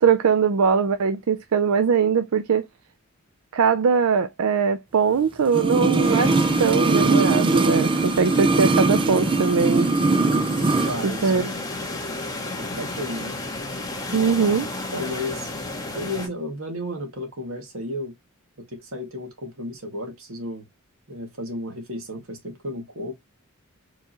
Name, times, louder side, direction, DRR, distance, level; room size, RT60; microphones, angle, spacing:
voice 1, 0.0-2.6 3.5-9.9 11.0-11.5 14.1-14.7, right 6 dB, 90° right, 0.5 m, -21 dB
sound 1, 5.5-11.0 11.2-11.3, right 3 dB, 25° right, 0.5 m, -21 dB
sound 2, 6.0-16.3, left 2 dB, 15° left, 1.5 m, -33 dB
voice 2, 10.8-11.6 12.6-13.3 14.9-15.6 15.9-18.1 18.6-20.6 21.1-23.1, left 1 dB, 70° right, 2.0 m, -33 dB
4.8 x 3.7 x 2.9 m
head